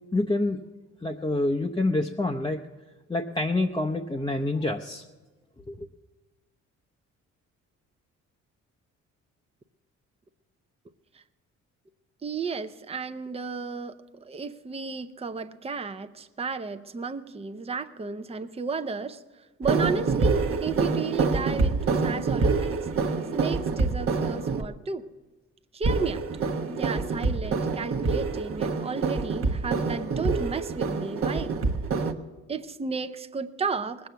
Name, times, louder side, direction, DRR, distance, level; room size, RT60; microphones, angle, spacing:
voice 1, 0.1-0.6 1.0-2.6 3.1-5.0 5.7-5.9, left 2 dB, 15° left, 1 dB, 0.7 m, -27 dB
voice 2, 12.2-19.2 19.6-22.9 23.3-25.1 25.7-31.6 32.5-34.1, right 5 dB, 20° right, 9 dB, 0.7 m, -33 dB
sound 1, 19.6-24.6 25.8-32.1, right 4 dB, 45° right, 1.1 m, -26 dB
19.5 x 7.6 x 6.9 m, 1.2 s
cardioid pair, 90°, 30 cm